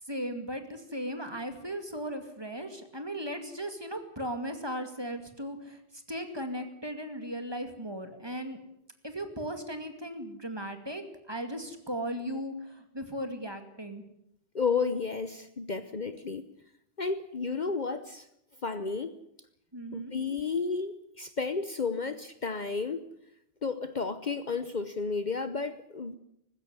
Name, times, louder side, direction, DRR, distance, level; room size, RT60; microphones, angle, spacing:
voice 1, 0.1-8.6 9.0-14.0 19.7-20.2, equal, 25° right, 7 dB, 2.4 m, -37 dB
voice 2, 14.5-16.5 17.0-18.3 18.6-19.2 19.9-23.1 23.6-26.2, left 4 dB, 45° left, 11 dB, 1.0 m, -32 dB
20.0 x 15.5 x 9.9 m, 0.79 s
omnidirectional pair, 1.1 m